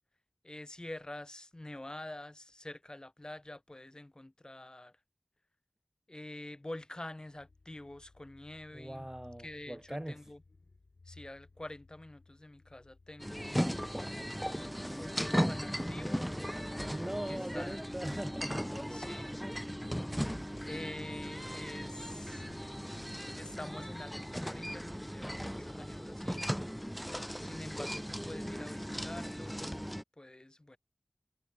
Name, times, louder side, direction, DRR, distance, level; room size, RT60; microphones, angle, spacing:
voice 1, 0.4-5.0 6.1-9.1 9.4-10.4 11.0-13.8 15.0-16.3 17.3-17.8 18.9-20.2 20.6-22.6 23.4-26.4 27.4-29.7 30.2-30.8, left 1 dB, 35° left, 3.3 m, -47 dB
sound 1, 7.4-24.2, left 3 dB, 85° left, 3.1 m, -59 dB
voice 2, 8.7-10.2 16.9-18.8, right 1 dB, 20° right, 1.2 m, -41 dB
sound 2, 13.2-30.0, equal, ahead, 0.5 m, -37 dB
wide cardioid pair, 45°, 2 cm